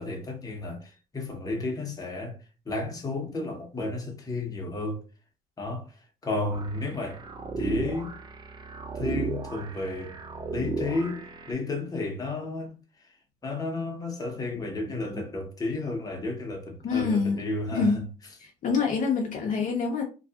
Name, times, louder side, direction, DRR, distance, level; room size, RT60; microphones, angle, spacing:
voice 1, 0.0-2.4 2.7-5.0 5.6-5.9 6.2-7.2 7.6-8.1 8.9-10.2 10.5-12.7 13.4-18.0, left 2 dB, 20° left, 0.8 m, -32 dB
sound 1, 6.5-11.5, right 4 dB, 25° right, 0.4 m, -35 dB
voice 2, 16.8-17.4 17.7-18.0 18.4-20.0, left 5 dB, 50° left, 0.6 m, -26 dB
2.7 x 2.3 x 2.4 m
cardioid pair, 110°, 17 cm